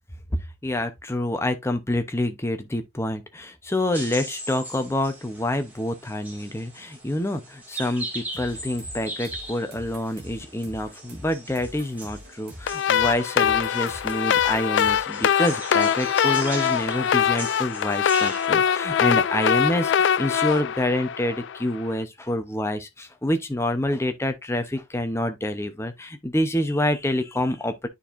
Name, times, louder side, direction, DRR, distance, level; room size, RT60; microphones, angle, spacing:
voice 1, 0.6-27.9, left 1 dB, 15° left, 0.7 m, -27 dB
sound 1, 3.9-18.5, right 1 dB, 10° right, 2.1 m, -39 dB
sound 2, 8.3-15.0, equal, 50° right, 1.9 m, -44 dB
sound 3, 12.7-21.8, left 8 dB, 60° left, 0.3 m, -23 dB
9.7 x 4.4 x 2.6 m
head